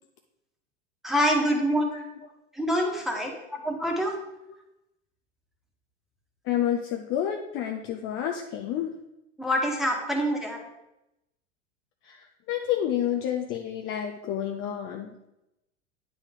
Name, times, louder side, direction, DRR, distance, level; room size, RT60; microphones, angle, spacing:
voice 1, 1.0-1.9 2.6-4.1 9.4-10.6, equal, ahead, 0 dB, 1.5 m, -26 dB
voice 2, 6.5-8.9 12.0-15.1, left 10 dB, 35° left, 3 dB, 0.7 m, -29 dB
9.7 x 3.9 x 4.9 m, 0.88 s
figure-of-eight pair, 85°, 37 cm